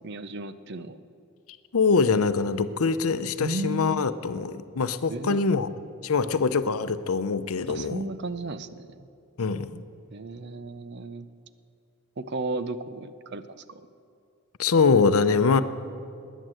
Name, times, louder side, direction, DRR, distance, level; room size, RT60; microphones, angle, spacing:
voice 1, 0.0-1.0 3.4-4.1 5.1-5.8 7.7-9.1 10.1-11.3 12.2-13.8, right 2 dB, 50° right, 13 dB, 0.6 m, -34 dB
voice 2, 1.7-5.7 6.0-8.0 9.4-9.8 14.6-15.6, left 4 dB, 75° left, 12 dB, 0.6 m, -23 dB
20.0 x 9.2 x 7.7 m, 2.5 s
head